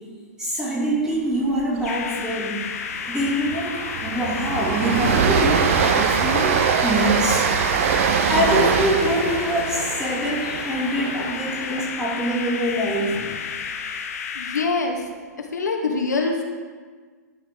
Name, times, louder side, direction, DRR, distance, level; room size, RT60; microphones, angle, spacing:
voice 1, 0.4-2.6 3.1-7.5 8.3-13.2, equal, 5° right, -4 dB, 2.0 m, -24 dB
Train, 1.6-1.9 2.2-2.3 2.7-12.8, right 7 dB, 50° right, 0.5 m, -23 dB
sound 1, 1.8-14.7, left 6 dB, 55° left, 0.6 m, -32 dB
voice 2, 14.3-15.0 15.4-16.4, left 4 dB, 70° left, 2 dB, 1.0 m, -24 dB
11.5 x 4.7 x 3.6 m, 1.5 s
figure-of-eight pair, 110°, 9 cm